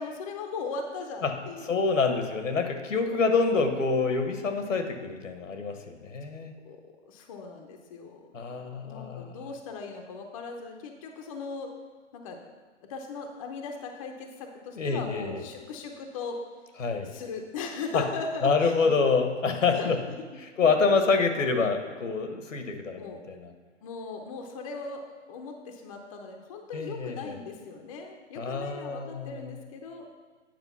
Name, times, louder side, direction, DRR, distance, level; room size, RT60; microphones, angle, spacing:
voice 1, 0.0-1.8 6.6-6.8 7.1-8.2 8.5-11.7 12.1-12.4 12.9-16.4 17.0-19.0 19.7-19.9 20.2-20.3 20.6-20.7 22.9-23.2 23.8-30.1, left 4 dB, 25° left, 3 dB, 0.7 m, -38 dB
voice 2, 1.6-6.5 8.3-9.4 14.7-15.4 16.8-17.1 17.9-18.0 18.4-20.0 20.6-23.5 26.7-27.4 28.4-29.5, left 4 dB, 85° left, 6 dB, 1.4 m, -27 dB
9.2 x 5.2 x 5.5 m, 1.5 s
hypercardioid pair, 150°, 37 cm